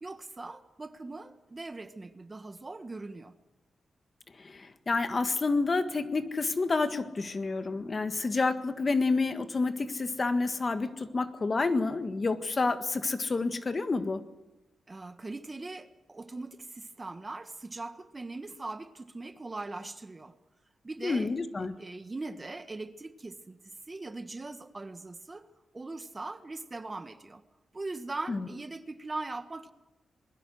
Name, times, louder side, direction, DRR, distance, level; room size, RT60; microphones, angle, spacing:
voice 1, 0.0-3.3 14.9-20.3 20.8-21.3 21.8-23.6 23.9-25.5 25.7-27.4 27.7-29.7, right 2 dB, 25° right, 1.3 m, -40 dB
voice 2, 4.4-14.2 21.0-21.7 28.3-28.4, left 3 dB, 40° left, 1.7 m, -29 dB
27.5 x 21.0 x 6.4 m
cardioid pair, 90°, 0 cm